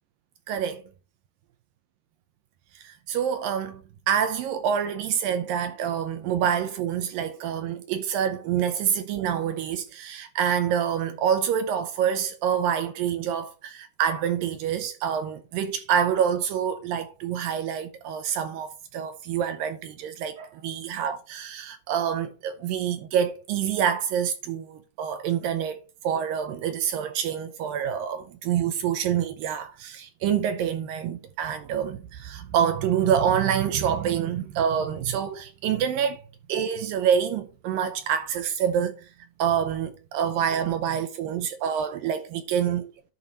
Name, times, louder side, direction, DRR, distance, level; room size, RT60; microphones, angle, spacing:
voice 1, 0.5-0.8 2.8-3.8 4.1-36.2 36.5-39.1 39.4-42.9, right 8 dB, 80° right, 2.1 m, -27 dB
11.0 x 4.0 x 5.5 m
omnidirectional pair, 4.8 m